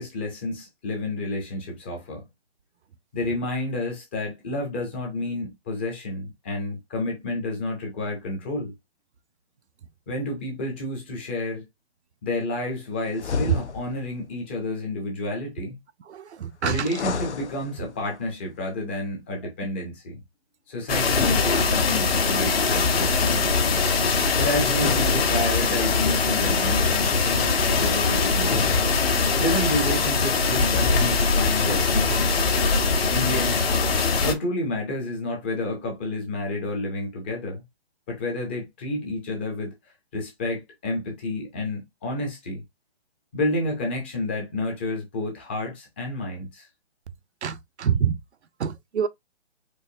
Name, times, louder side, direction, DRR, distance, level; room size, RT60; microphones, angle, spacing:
voice 1, 0.0-2.3 3.1-8.7 10.1-11.7 12.2-15.8 16.6-20.2 20.7-23.5 24.4-28.8 29.4-32.2 33.1-33.6 34.2-37.6 38.1-39.7 40.1-42.6 43.3-46.7, left 1 dB, 10° left, 0.5 m, -30 dB
sound 1, 13.1-14.1 16.8-18.1 21.0-22.2 24.7-25.9 28.3-29.3, left 5 dB, 85° left, 0.8 m, -31 dB
voice 2, 16.1-16.9 47.4-48.2 48.6-49.1, right 7 dB, 75° right, 0.6 m, -26 dB
sound 2, 20.9-34.3, left 4 dB, 60° left, 1.4 m, -22 dB
4.6 x 2.9 x 2.6 m
hypercardioid pair, 150°, 33 cm